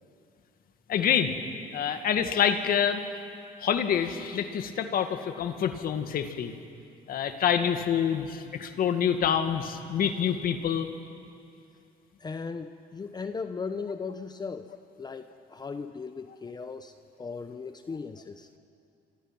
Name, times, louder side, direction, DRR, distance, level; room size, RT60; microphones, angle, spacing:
voice 1, 0.9-1.3 1.7-3.0 3.6-6.5 7.1-10.9, left 8 dB, 60° left, 7 dB, 1.9 m, -27 dB
voice 2, 12.2-14.7 15.0-16.9 17.2-18.5, left 5 dB, 25° left, 9 dB, 0.9 m, -37 dB
28.5 x 26.0 x 6.1 m, 2.5 s
cardioid pair, 110°, 17 cm